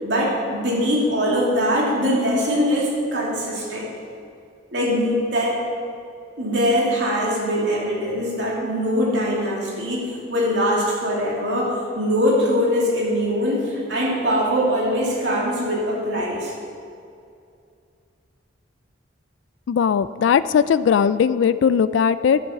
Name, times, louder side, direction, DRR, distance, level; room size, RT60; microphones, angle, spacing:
voice 1, 0.0-3.9 4.7-5.6 6.4-16.5, equal, 65° right, -4 dB, 2.7 m, -22 dB
voice 2, 19.7-22.4, left 7 dB, 75° left, 14 dB, 0.3 m, -18 dB
11.0 x 7.8 x 5.7 m, 2.4 s
head